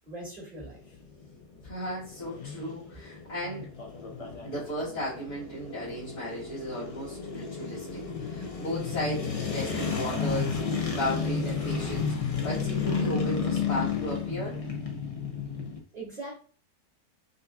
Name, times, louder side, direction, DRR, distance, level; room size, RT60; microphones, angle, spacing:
voice 1, 0.0-0.8 15.9-16.3, right 2 dB, 25° right, -6 dB, 2.0 m, -40 dB
sound 1, 0.6-15.8, left 5 dB, 45° left, 0.4 m, -32 dB
voice 2, 1.6-3.7 4.4-10.6 10.9-14.6, equal, 85° left, -11 dB, 2.2 m, -35 dB
5.2 x 2.7 x 2.3 m, 0.41 s
omnidirectional pair, 1.6 m